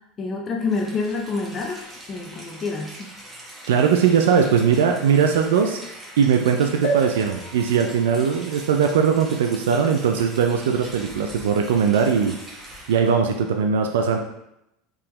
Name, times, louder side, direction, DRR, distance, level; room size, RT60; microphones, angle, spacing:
voice 1, 0.2-1.8 2.1-3.1, left 4 dB, 35° left, 1 dB, 0.6 m, -27 dB
Rain, 0.6-13.2, right 1 dB, 10° right, 1.0 m, -42 dB
voice 2, 3.7-5.8 6.2-12.4 12.9-14.2, right 6 dB, 85° right, 3 dB, 0.3 m, -20 dB
sound 1, 6.8-10.5 11.1-11.2 11.4-11.5, right 3 dB, 80° left, 1.3 m, -33 dB
3.6 x 2.8 x 3.1 m, 0.83 s
supercardioid pair, 105°, 0 cm